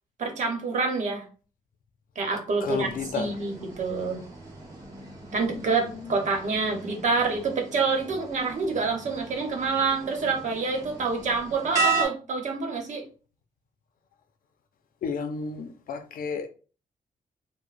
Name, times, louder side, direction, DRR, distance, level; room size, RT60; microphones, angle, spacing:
voice 1, 0.2-1.2 2.1-2.9 3.1-4.2 5.3-13.0, right 4 dB, 60° right, 1.0 m, -27 dB
voice 2, 2.6-3.3 5.9-6.2 15.0-16.5, left 5 dB, 85° left, 0.5 m, -32 dB
sound 1, 2.6-12.1, right 4 dB, 25° right, 1.1 m, -35 dB
4.8 x 2.2 x 2.5 m
wide cardioid pair, 150°, 14 cm